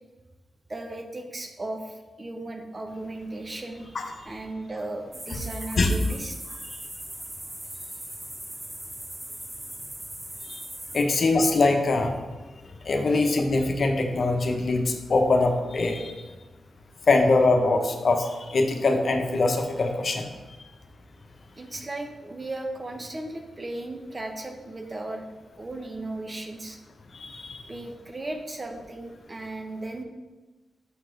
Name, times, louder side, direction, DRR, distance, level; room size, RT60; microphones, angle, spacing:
voice 1, 0.7-6.9 13.1-13.2 21.5-25.3 25.6-26.8 27.7-30.0, right 2 dB, 40° right, 4 dB, 1.1 m, -36 dB
sound 1, 5.1-11.0, right 1 dB, 25° right, 1.0 m, -39 dB
voice 2, 10.9-12.2 12.8-16.2 17.1-20.3 27.1-27.6, left 3 dB, 60° left, 4 dB, 0.9 m, -23 dB
6.7 x 4.7 x 3.9 m, 1.2 s
supercardioid pair, 40°, 0 cm